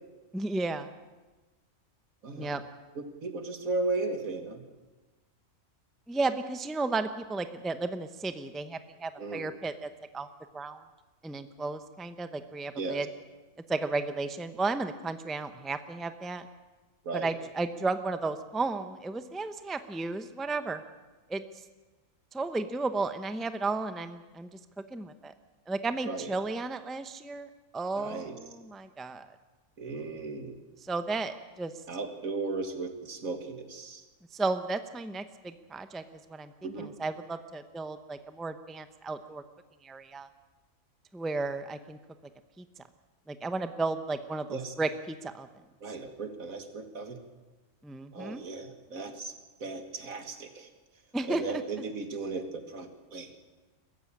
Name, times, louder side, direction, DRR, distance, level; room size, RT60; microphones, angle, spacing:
voice 1, 0.3-0.9 2.3-2.6 6.1-10.3 10.5-10.8 11.2-13.1 13.7-16.5 17.1-20.8 21.3-21.4 22.3-24.6 24.9-25.3 25.7-29.3 30.8-31.7 34.3-36.0 36.3-39.4 39.8-40.3 41.1-42.0 42.6-42.7 43.3-45.5 47.8-48.4 51.1-51.4, right 3 dB, ahead, 9 dB, 0.7 m, -33 dB
voice 2, 2.2-2.6 3.0-4.6 9.2-9.4 12.8-13.0 17.0-17.3 26.1-26.3 28.0-28.4 29.8-30.6 31.9-34.0 36.6-36.9 44.5-44.7 45.8-47.2 48.1-49.3 49.6-50.7 51.2-53.3, right 3 dB, 80° right, 6 dB, 2.3 m, -36 dB
22.5 x 14.5 x 8.7 m, 1.2 s
omnidirectional pair, 1.4 m